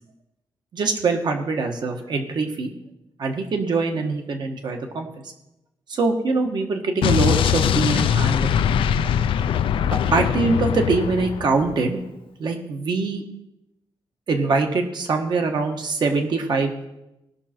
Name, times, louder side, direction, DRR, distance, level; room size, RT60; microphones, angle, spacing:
voice 1, 0.7-2.7 3.2-5.1 5.9-8.5 10.1-12.0 12.4-13.2 14.3-16.7, right 3 dB, 55° right, 4 dB, 1.5 m, -23 dB
Explosion, 7.0-11.8, left 9 dB, 80° left, 0.5 m, -21 dB
18.0 x 6.3 x 4.4 m, 0.90 s
wide cardioid pair, 145°, 9 cm